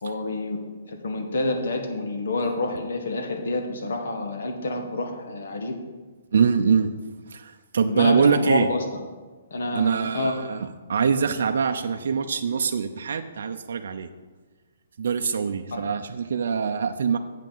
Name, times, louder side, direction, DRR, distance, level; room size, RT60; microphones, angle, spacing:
voice 1, 0.0-5.8 7.8-8.8 9.5-10.4 15.7-15.9, left 2 dB, 65° left, 4 dB, 1.5 m, -28 dB
voice 2, 6.3-6.9 7.3-8.7 9.7-14.1 15.0-17.2, right 6 dB, 60° right, 6 dB, 0.5 m, -23 dB
7.7 x 5.9 x 7.2 m, 1.3 s
hypercardioid pair, 175°, 0 cm